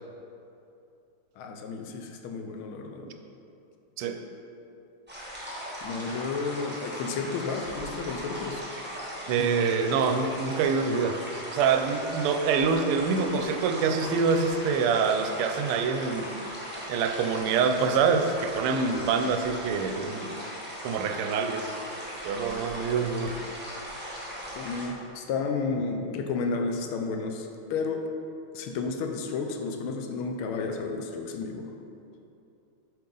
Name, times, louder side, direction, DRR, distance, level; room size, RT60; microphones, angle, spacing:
voice 1, 1.4-3.1 5.8-8.6 24.5-28.0 28.5-31.7, left 4 dB, 75° left, 4 dB, 1.4 m, -32 dB
sound 1, 5.1-24.9, equal, 5° right, 0.8 m, -38 dB
voice 2, 9.3-11.2 11.5-16.3 16.9-20.3 20.8-21.7 22.2-23.4, right 5 dB, 90° right, 6 dB, 1.5 m, -25 dB
7.6 x 5.0 x 3.8 m, 2.7 s
omnidirectional pair, 2.4 m